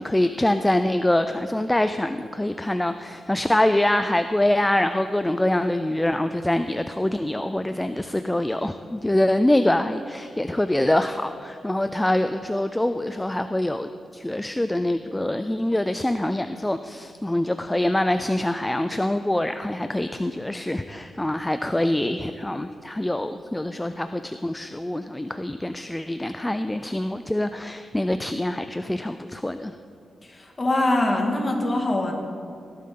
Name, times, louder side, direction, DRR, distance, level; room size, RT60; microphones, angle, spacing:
voice 1, 0.0-29.8, left 1 dB, 10° left, 9 dB, 0.3 m, -24 dB
voice 2, 30.2-32.1, left 2 dB, 30° left, 1 dB, 1.9 m, -23 dB
17.0 x 11.0 x 3.8 m, 2.5 s
wide cardioid pair, 120°, 0 cm